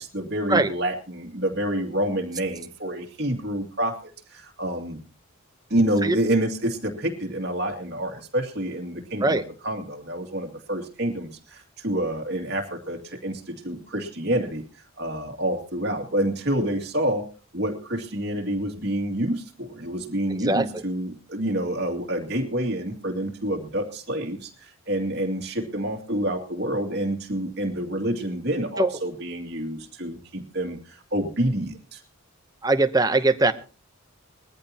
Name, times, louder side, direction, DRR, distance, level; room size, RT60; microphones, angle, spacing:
voice 1, 0.0-5.0 5.7-14.6 15.0-17.3 17.5-32.0, right 1 dB, 50° right, 3 dB, 2.4 m, -28 dB
voice 2, 20.3-20.8 28.8-28.9 32.6-33.5, right 2 dB, 15° right, 9 dB, 0.8 m, -21 dB
21.0 x 14.0 x 2.9 m, 0.35 s
head